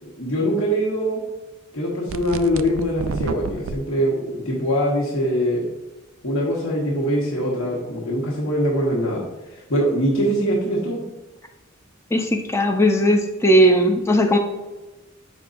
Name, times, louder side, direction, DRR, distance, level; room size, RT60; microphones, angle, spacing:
voice 1, 0.0-1.2 1.7-5.7 6.2-9.2 9.5-11.0, equal, 75° left, -4 dB, 1.4 m, -23 dB
sound 1, 2.1-3.8, right 6 dB, 70° right, 0.3 m, -30 dB
voice 2, 12.1-14.4, equal, 15° left, 3 dB, 0.5 m, -17 dB
7.6 x 5.4 x 2.5 m, 1.1 s
head